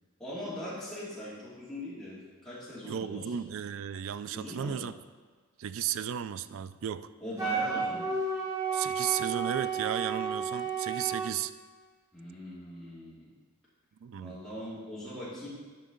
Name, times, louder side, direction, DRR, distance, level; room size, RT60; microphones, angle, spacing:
voice 1, 0.2-3.3 4.3-4.8 7.2-8.1 12.1-13.3 14.2-15.5, left 1 dB, ahead, -10 dB, 2.6 m, -41 dB
voice 2, 2.8-4.9 5.6-7.1 8.7-11.5 14.0-14.4, right 9 dB, 65° right, 14 dB, 0.3 m, -34 dB
Wind instrument woodwind instrument, 7.4-11.3, right 5 dB, 15° right, 1.2 m, -32 dB
11.0 x 5.2 x 3.9 m, 1.5 s
head